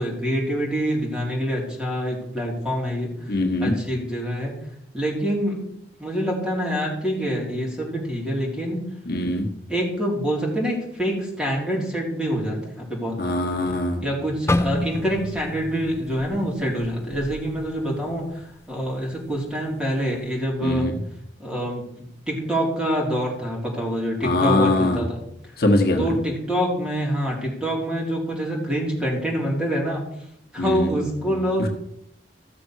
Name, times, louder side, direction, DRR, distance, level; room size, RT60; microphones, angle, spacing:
voice 1, 0.0-3.1 3.6-4.5 4.9-5.7 6.0-8.8 9.7-13.3 14.0-18.3 18.7-20.9 21.4-21.8 22.3-25.2 26.0-30.0 30.5-31.7, equal, 5° right, -3 dB, 3.9 m, -26 dB
voice 2, 3.3-3.8 9.1-9.5 13.2-14.0 20.6-20.9 24.2-25.0 25.6-26.1 30.6-30.9, left 2 dB, 60° left, 2 dB, 1.5 m, -22 dB
sound 1, 14.5-18.5 18.9-19.1 19.8-20.1, left 1 dB, 15° left, 0.5 m, -29 dB
14.5 x 6.8 x 6.5 m, 0.74 s
head